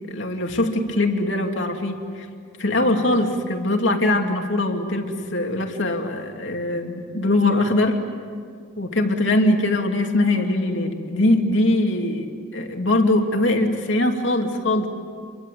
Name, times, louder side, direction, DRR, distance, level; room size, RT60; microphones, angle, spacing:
voice 1, 0.1-2.0 2.6-8.0 8.8-14.9, left 1 dB, 60° left, 3 dB, 2.9 m, -22 dB
29.0 x 23.5 x 8.6 m, 2.1 s
head